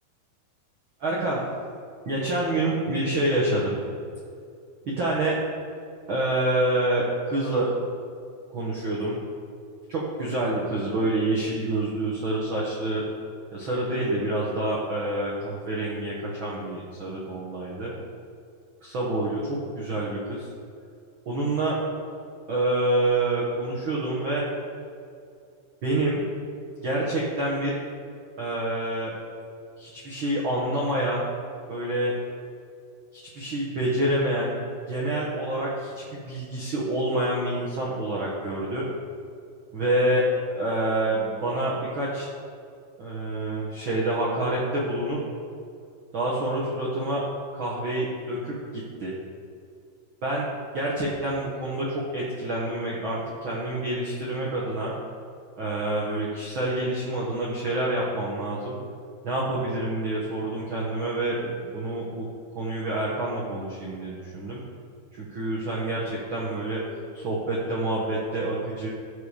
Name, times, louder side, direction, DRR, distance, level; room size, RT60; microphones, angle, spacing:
voice 1, 1.0-1.4 2.0-3.7 4.8-5.4 6.1-7.7 8.5-9.2 9.9-13.0 13.5-17.9 18.8-20.5 21.2-21.8 22.5-24.4 25.8-26.2 26.8-27.8 28.4-29.1 29.8-31.2 31.7-32.1 33.1-34.6 34.9-38.8 39.7-40.3 40.5-42.3 43.0-45.2 46.1-47.2 47.5-49.1 50.2-50.5 50.7-54.9 55.6-58.8 59.2-62.3 62.5-64.6 65.1-66.8 67.1-68.9, right 1 dB, 85° right, -5 dB, 1.1 m, -27 dB
15.0 x 5.1 x 5.1 m, 2.4 s
omnidirectional pair, 4.6 m